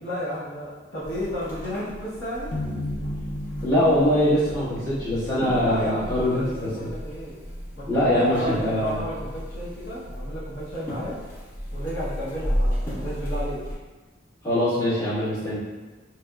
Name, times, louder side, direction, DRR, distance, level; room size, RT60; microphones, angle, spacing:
voice 1, 0.0-2.5 5.6-7.3 7.7-11.2 11.7-13.6, equal, 60° left, -10 dB, 0.8 m, -32 dB
sound 1, 1.0-13.7, equal, 45° left, 1.2 m, -33 dB
sound 2, 2.5-5.7, left 1 dB, 80° left, 0.5 m, -34 dB
voice 2, 3.6-6.7 7.9-9.0 14.4-15.6, left 1 dB, 20° left, -14 dB, 1.5 m, -23 dB
3.1 x 2.7 x 2.3 m, 1.3 s
head